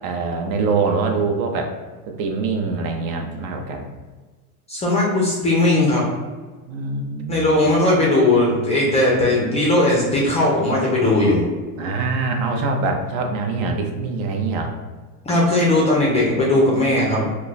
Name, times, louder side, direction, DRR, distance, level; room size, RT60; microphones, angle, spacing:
voice 1, 0.0-1.7 2.2-3.9 6.7-7.8 11.8-14.7, right 4 dB, 55° right, 3 dB, 0.6 m, -24 dB
voice 2, 4.7-6.1 7.3-11.4 15.3-17.3, left 1 dB, 15° left, -4 dB, 0.4 m, -18 dB
2.2 x 2.2 x 3.9 m, 1.3 s
supercardioid pair, 115°, 45 cm